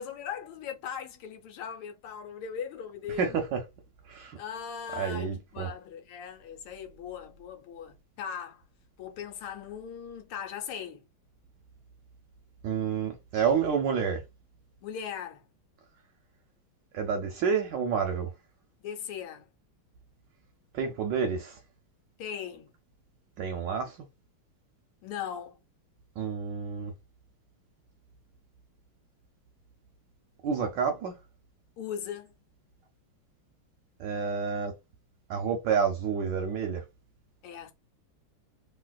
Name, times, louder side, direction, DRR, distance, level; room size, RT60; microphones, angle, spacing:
voice 1, 0.0-3.4 4.4-8.6 9.0-11.0 14.8-15.4 18.8-19.5 22.2-22.7 25.0-25.6 31.8-32.3 37.4-37.7, left 8 dB, 80° left, 1.6 m, -39 dB
voice 2, 3.1-3.6 4.0-4.4 4.9-5.7 12.6-14.2 16.9-18.3 20.7-21.6 23.4-24.1 26.2-26.9 30.4-31.1 34.0-34.7 35.3-36.8, right 6 dB, 70° right, 1.1 m, -29 dB
3.2 x 2.7 x 2.3 m
omnidirectional pair, 2.3 m